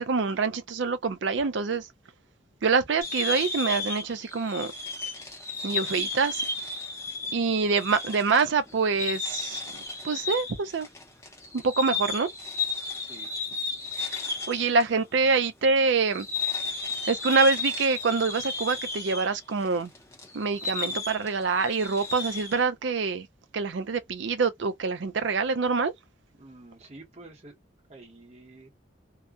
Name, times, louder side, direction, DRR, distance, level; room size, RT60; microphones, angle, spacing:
voice 1, 0.0-1.8 2.6-4.7 5.6-6.4 7.3-10.9 11.5-12.3 14.1-14.2 14.5-16.3 17.1-19.9 20.3-23.3 23.5-25.9, right 4 dB, 70° right, 0.5 m, -25 dB
sound 1, 3.0-14.9 15.1-15.2 15.9-22.6, left 4 dB, 15° left, 0.7 m, -34 dB
voice 2, 13.0-13.3 14.6-14.7 15.2-15.3 26.4-27.6 27.9-28.7, right 2 dB, 35° right, 1.0 m, -48 dB
2.7 x 2.2 x 2.3 m
head